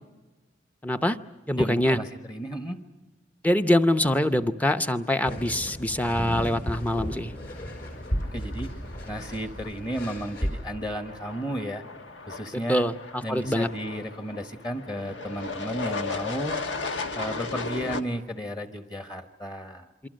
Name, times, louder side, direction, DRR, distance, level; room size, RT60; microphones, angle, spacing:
voice 1, 0.8-1.2 1.5-2.0 3.4-7.3 12.7-13.7, left 1 dB, 10° left, 9 dB, 0.7 m, -24 dB
voice 2, 1.6-2.8 8.3-8.7 9.1-11.8 12.3-12.9 13.2-16.6 17.1-19.9, equal, 25° left, 7 dB, 1.3 m, -33 dB
sound 1, 5.2-10.5, equal, 60° left, 5.1 m, -34 dB
sound 2, 6.7-18.0, left 4 dB, 90° left, 1.5 m, -37 dB
27.5 x 24.0 x 6.4 m, 1.2 s
head